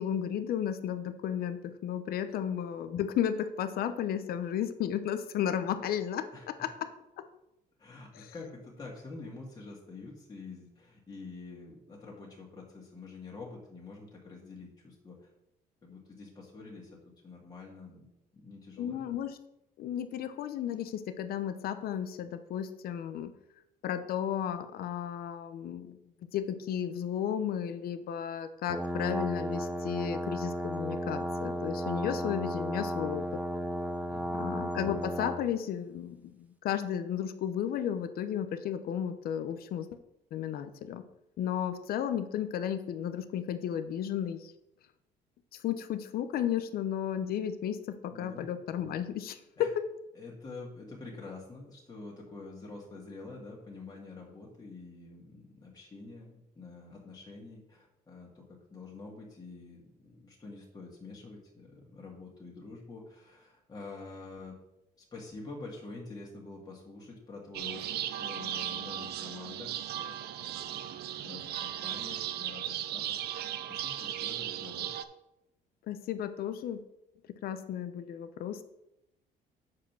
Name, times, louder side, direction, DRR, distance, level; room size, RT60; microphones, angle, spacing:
voice 1, 0.0-7.3 8.1-8.3 18.8-19.4 19.8-23.3 23.8-26.0 26.3-33.4 34.4-39.9 40.3-41.0 41.4-44.5 45.6-49.9 75.9-76.8 77.4-78.6, left 9 dB, 65° left, 11 dB, 0.7 m, -34 dB
voice 2, 6.3-6.7 7.8-15.3 15.8-19.0 34.1-34.4 48.1-48.5 49.6-49.7 50.1-58.5 58.7-64.6 65.1-74.9, left 3 dB, 25° left, -3 dB, 2.0 m, -47 dB
sound 1, 28.7-35.5, equal, 10° right, 0.7 m, -34 dB
sound 2, 67.5-75.0, right 11 dB, 70° right, 0.6 m, -36 dB
7.5 x 5.0 x 6.1 m, 0.87 s
cardioid pair, 110°, 17 cm